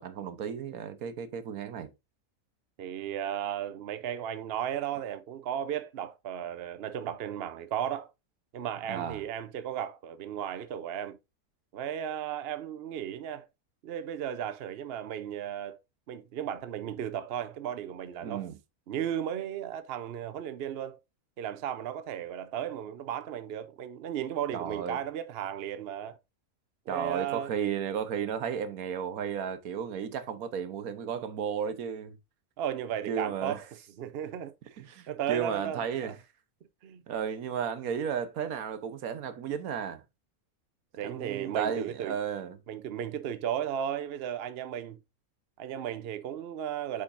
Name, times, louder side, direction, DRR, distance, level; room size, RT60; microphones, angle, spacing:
voice 1, 0.0-1.9 8.9-9.2 18.2-18.6 24.5-25.0 26.9-32.2 33.1-33.6 34.8-36.2 37.1-40.0 41.0-42.6, right 7 dB, 75° right, 1.3 m, -34 dB
voice 2, 2.8-8.1 8.5-11.2 11.7-13.5 13.8-15.8 16.1-18.4 18.9-21.0 21.4-26.2 26.9-27.5 32.6-33.6 34.0-36.2 36.8-37.0 41.0-42.2 42.7-45.0 45.6-47.0, right 10 dB, 55° right, 0.7 m, -35 dB
8.3 x 5.1 x 2.5 m
omnidirectional pair, 1.6 m